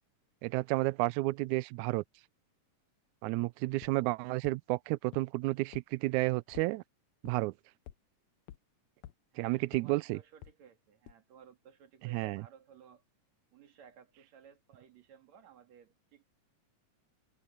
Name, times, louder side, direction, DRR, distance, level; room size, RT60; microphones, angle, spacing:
voice 1, 0.4-2.0 3.2-6.8 7.2-7.5 9.4-10.2 12.0-12.4, right 21 dB, 85° right, 1.7 m, -31 dB
sound 1, 3.8-3.9 4.4-4.5 5.1-5.2 5.7-5.8 6.2-6.7 7.2-7.3 7.9-8.0 8.5-8.6 9.0-9.1 9.7-9.8 10.4-10.5 11.1-11.2, left 13 dB, 80° left, 1.6 m, -48 dB
voice 2, 9.3-13.0 13.5-16.2, right 8 dB, 55° right, 3.1 m, -57 dB
omnidirectional pair, 3.9 m